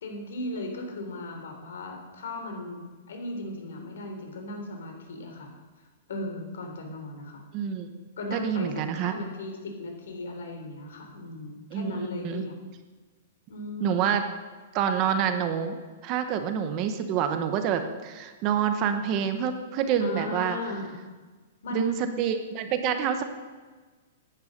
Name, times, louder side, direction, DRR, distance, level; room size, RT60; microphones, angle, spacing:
voice 1, 0.0-5.5 6.1-7.4 8.2-12.6 13.5-14.0 15.1-15.3 20.0-20.9 21.6-22.1, left 1 dB, 70° left, 3 dB, 3.6 m, -36 dB
voice 2, 7.5-8.0 8.3-9.1 11.7-11.9 12.2-12.4 13.8-14.2 14.7-15.8 16.0-20.6 21.7-23.2, right 8 dB, 25° right, 8 dB, 0.9 m, -27 dB
14.5 x 10.5 x 6.5 m, 1.4 s
hypercardioid pair, 180°, 0 cm